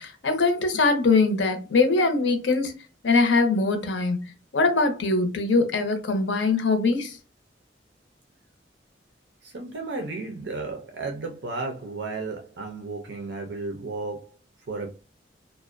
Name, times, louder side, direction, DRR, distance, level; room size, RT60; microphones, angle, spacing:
voice 1, 0.0-4.2 4.5-7.2, left 3 dB, 85° left, 0.6 m, -22 dB
voice 2, 9.4-14.4 14.7-14.9, right 3 dB, 70° right, 0.5 m, -33 dB
2.5 x 2.1 x 2.4 m
head